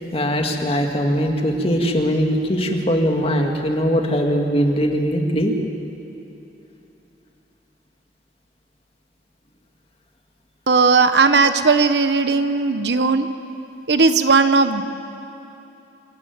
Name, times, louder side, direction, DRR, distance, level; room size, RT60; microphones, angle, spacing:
voice 1, 0.1-5.5, equal, 35° left, 2 dB, 2.2 m, -20 dB
voice 2, 10.7-13.3 13.9-14.8, right 4 dB, 65° right, 10 dB, 1.0 m, -17 dB
26.5 x 14.0 x 9.5 m, 2.9 s
head